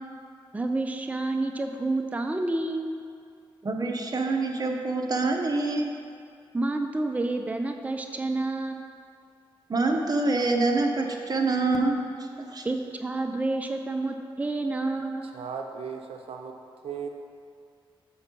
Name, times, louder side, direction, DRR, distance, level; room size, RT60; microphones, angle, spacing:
voice 1, 0.5-2.9 6.5-8.9 12.6-15.3, right 2 dB, 15° right, 5 dB, 0.5 m, -29 dB
voice 2, 3.6-5.9 9.7-12.6, right 3 dB, 40° right, 3 dB, 0.8 m, -26 dB
voice 3, 15.2-16.6 16.8-17.1, right 6 dB, 90° right, 4 dB, 0.5 m, -36 dB
7.0 x 4.5 x 5.3 m, 2.3 s
cardioid pair, 75°, 10 cm